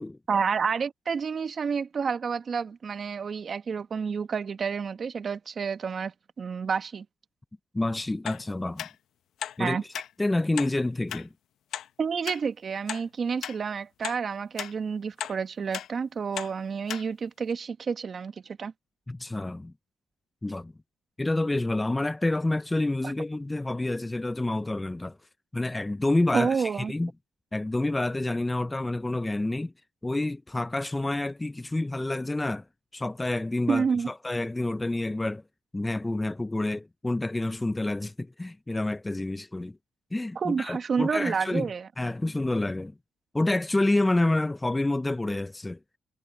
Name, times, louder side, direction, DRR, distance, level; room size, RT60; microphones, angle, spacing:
voice 1, 0.3-7.0 9.6-9.8 12.0-18.7 23.0-23.1 26.3-26.9 33.7-34.1 40.3-41.9, right 6 dB, 45° right, 1.5 m, -29 dB
voice 2, 7.7-8.9 9.6-9.8 10.2-11.3 19.1-19.7 20.4-20.7 21.2-25.2 25.5-27.1 27.5-29.7 30.0-32.6 32.9-35.4 35.7-39.8 40.1-41.7 42.0-42.9 43.3-45.8, left 2 dB, 15° left, 0.5 m, -28 dB
sound 1, 8.3-8.4 8.8-8.9 9.4-9.6 9.9-10.1 10.6-10.7 11.1-11.2 11.7-11.9 12.3-12.4 12.9-13.0 13.4-13.6 14.0-14.2 14.6-14.7 15.2-15.4 15.7-15.9 16.4-16.5 16.9-17.0 17.5-17.6, left 10 dB, 75° left, 0.7 m, -35 dB
cardioid pair, 90°, 0 cm